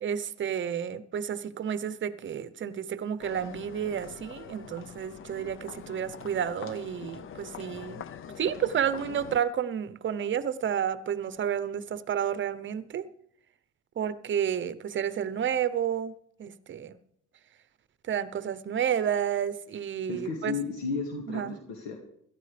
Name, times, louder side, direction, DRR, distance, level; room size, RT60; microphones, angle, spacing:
voice 1, 0.0-8.0 8.4-13.1 14.0-16.1 16.4-17.0 18.1-20.5 21.3-21.6, right 8 dB, 35° right, 16 dB, 0.8 m, -31 dB
sound 1, 3.2-9.4, left 8 dB, 40° left, 0.7 m, -44 dB
voice 2, 20.1-22.0, left 4 dB, 80° left, 2 dB, 2.0 m, -33 dB
17.5 x 12.5 x 3.4 m, 0.70 s
supercardioid pair, 90°, 34 cm